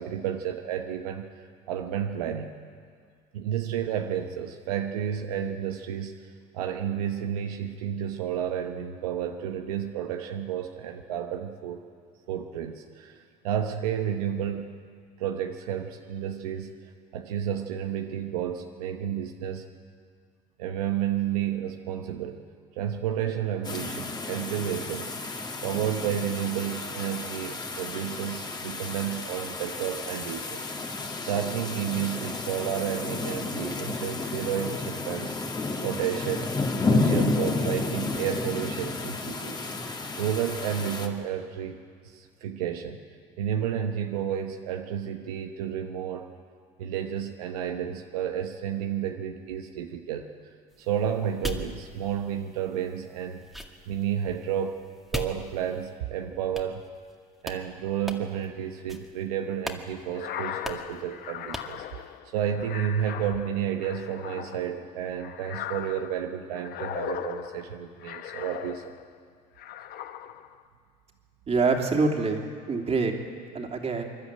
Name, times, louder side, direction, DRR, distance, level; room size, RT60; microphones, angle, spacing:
voice 1, 0.0-2.6 3.3-11.8 12.3-14.7 15.2-19.7 20.6-22.5 22.8-25.1 25.6-30.7 31.2-36.5 36.9-39.7 40.2-41.8 42.0-43.0 43.4-46.3 46.8-50.3 50.8-53.4 53.9-54.8 55.1-56.8 57.4-62.1 62.3-68.9, right 9 dB, 90° right, 5 dB, 1.1 m, -31 dB
sound 1, 23.6-41.1, left 3 dB, 20° left, 2.2 m, -31 dB
sound 2, 50.7-56.0 56.5-57.1 57.4-57.6 58.0-58.5 58.9-59.2 59.6-59.8 60.1-60.2 60.6-61.0 61.5-61.8, equal, ahead, 2.1 m, -39 dB
sound 3, 60.1-69.2 69.6-70.6, left 11 dB, 55° left, 1.0 m, -39 dB
voice 2, 71.5-73.1 73.5-74.0, right 4 dB, 35° right, 2 dB, 3.0 m, -25 dB
26.5 x 11.5 x 9.1 m, 2.1 s
supercardioid pair, 80°, 19 cm